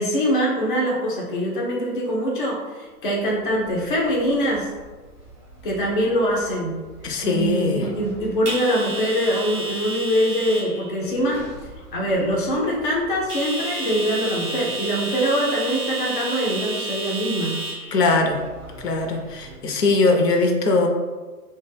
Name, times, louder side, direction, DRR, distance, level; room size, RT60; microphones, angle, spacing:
voice 1, 0.0-4.7 5.6-6.8 7.2-11.4 11.9-17.6, equal, 35° left, -3 dB, 0.4 m, -23 dB
sound 1, 3.4-19.6, right 2 dB, 20° right, 0.6 m, -34 dB
voice 2, 7.0-7.9 17.9-18.4 18.8-20.9, left 3 dB, 80° left, 4 dB, 0.6 m, -20 dB
2.2 x 2.1 x 3.2 m, 1.3 s
figure-of-eight pair, 135°, 47 cm